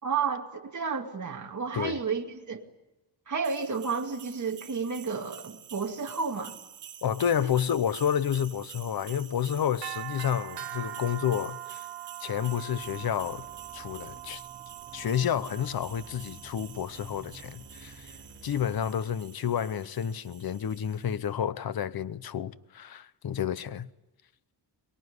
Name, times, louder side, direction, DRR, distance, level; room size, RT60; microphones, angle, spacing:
voice 1, 0.0-2.7 3.3-6.6, right 5 dB, 45° right, 2.5 m, -31 dB
sound 1, 3.4-21.2, right 12 dB, 75° right, 1.1 m, -44 dB
voice 2, 7.0-11.9 12.2-13.5 13.7-14.4 14.9-23.9, left 9 dB, 55° left, 0.8 m, -30 dB
sound 2, 12.8-18.8, right 2 dB, 30° right, 4.2 m, -51 dB
23.5 x 22.0 x 9.6 m
wide cardioid pair, 155°, 42 cm